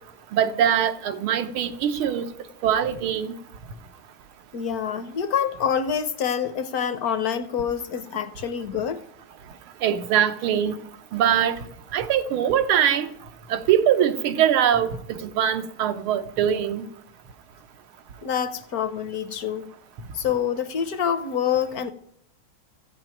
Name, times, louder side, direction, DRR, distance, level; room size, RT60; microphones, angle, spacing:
voice 1, 0.3-2.3 2.6-3.3 9.8-10.8 11.1-11.6 11.9-13.1 13.5-16.9, right 9 dB, 90° right, 1.9 m, -22 dB
voice 2, 4.5-9.0 18.2-19.7 20.1-21.9, left 8 dB, 60° left, 1.0 m, -26 dB
14.5 x 7.5 x 9.0 m
omnidirectional pair, 2.3 m